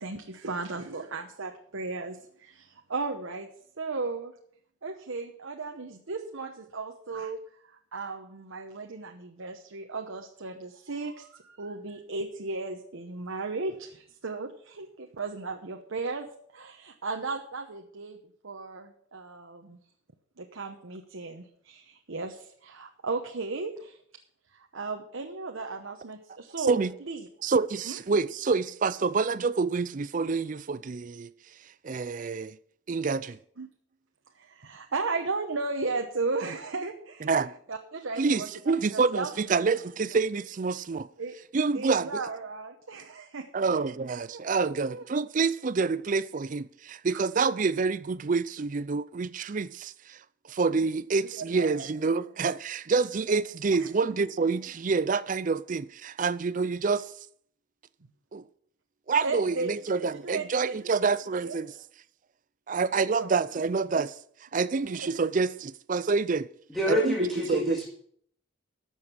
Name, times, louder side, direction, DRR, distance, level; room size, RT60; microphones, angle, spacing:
voice 1, 0.0-3.5 3.8-4.3 4.8-7.4 7.9-19.8 20.4-24.0 24.5-26.8 27.0-27.3 27.9-28.0 33.6-33.7 34.3-38.5 38.9-39.3 41.2-41.4 41.7-43.5 43.7-43.8 44.3-44.4 44.8-45.0 47.1-47.2 51.5-51.9 53.3-53.4 53.8-54.2 59.2-59.8 60.2-60.7 61.4-61.6 62.9-63.3 64.7-65.2, right 3 dB, 85° right, 1.0 m, -35 dB
voice 2, 27.4-31.3 31.8-32.6 32.9-33.4 37.2-37.6 38.2-41.1 41.5-42.2 43.5-50.2 50.5-57.1 58.3-58.4 59.1-61.7 62.7-64.2 64.5-66.5 66.9-67.8, right 4 dB, 40° right, 0.4 m, -27 dB
voice 3, 66.7-67.8, equal, ahead, 2.0 m, -27 dB
13.0 x 7.4 x 6.0 m
head